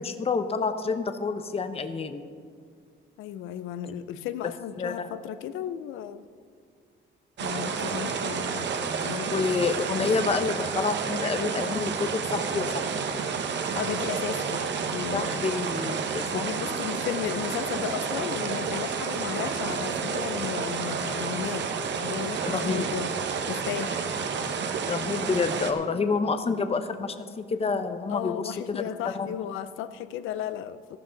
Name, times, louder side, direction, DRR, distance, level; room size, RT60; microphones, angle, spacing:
voice 1, 0.0-2.2 4.8-5.1 9.3-12.7 15.1-16.8 22.5-22.9 24.9-28.8 29.1-29.3, left 4 dB, 30° left, 0.8 m, -28 dB
voice 2, 3.2-6.2 7.4-9.5 13.7-15.5 16.3-24.1 28.1-31.0, left 10 dB, 90° left, 0.6 m, -35 dB
sound 1, 7.4-25.7, right 5 dB, 65° right, 1.1 m, -30 dB
14.0 x 12.5 x 3.9 m
cardioid pair, 90°, 20 cm